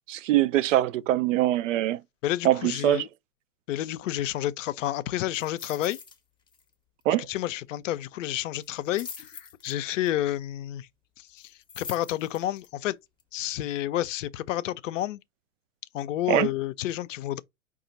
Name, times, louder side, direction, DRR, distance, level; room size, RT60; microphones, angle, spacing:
voice 1, 0.1-2.0 2.4-3.0 7.1-7.3 16.3-16.5, right 13 dB, 60° right, 0.5 m, -23 dB
voice 2, 2.2-3.1 3.7-6.0 7.3-10.9 11.2-13.0 13.3-15.2 15.9-17.4, left 13 dB, 60° left, 0.5 m, -30 dB
sound 1, 5.3-6.2 6.5-6.7 7.0-7.1 8.6-10.1 11.4-12.7 13.2-13.3, left 5 dB, 10° left, 0.7 m, -44 dB
4.8 x 2.4 x 3.9 m
hypercardioid pair, 105°, 43 cm